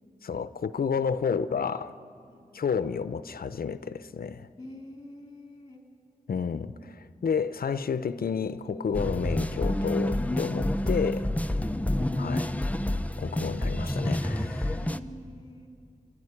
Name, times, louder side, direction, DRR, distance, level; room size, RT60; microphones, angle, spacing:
voice 1, 0.2-1.9 2.5-4.5 6.3-11.3 12.2-12.5 13.2-14.8, left 6 dB, 90° left, 0.6 m, -30 dB
voice 2, 2.3-2.7 4.6-5.9 14.8-15.7, left 1 dB, 30° left, 4.0 m, -47 dB
sound 1, 8.9-15.0, left 1 dB, 10° left, 0.7 m, -28 dB
28.5 x 12.0 x 9.8 m
wide cardioid pair, 85°, 15 cm